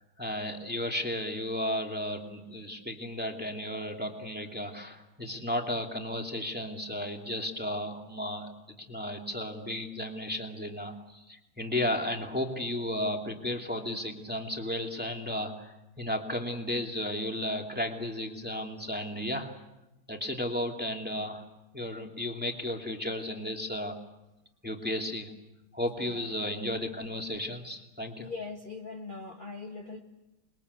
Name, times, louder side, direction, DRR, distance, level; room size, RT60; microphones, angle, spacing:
voice 1, 0.0-8.5 8.9-19.5 20.1-21.4 21.7-24.0 24.6-25.3 25.7-28.3, left 1 dB, 5° right, 2 dB, 2.6 m, -34 dB
voice 2, 26.0-26.3 28.2-30.0, left 4 dB, 25° left, 1 dB, 1.7 m, -41 dB
28.5 x 22.0 x 8.3 m, 0.97 s
omnidirectional pair, 2.2 m